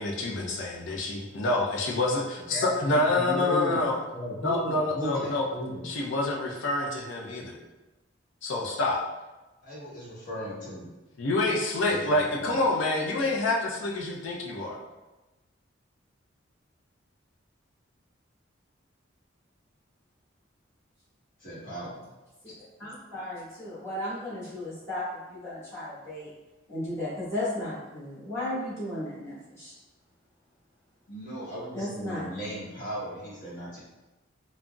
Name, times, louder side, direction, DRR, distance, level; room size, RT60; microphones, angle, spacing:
voice 1, 0.0-3.9 4.4-5.5 5.8-7.6 8.4-9.0 11.2-14.8, left 2 dB, 75° left, -1 dB, 0.5 m, -27 dB
voice 2, 2.5-3.9 4.1-5.9 9.6-10.9 11.9-12.6 21.4-22.0 31.1-33.8, equal, 45° left, -8 dB, 1.2 m, -36 dB
voice 3, 22.8-26.3 26.7-29.7 31.7-32.2, left 1 dB, 15° left, -11 dB, 1.1 m, -35 dB
3.7 x 2.0 x 2.3 m, 1.1 s
head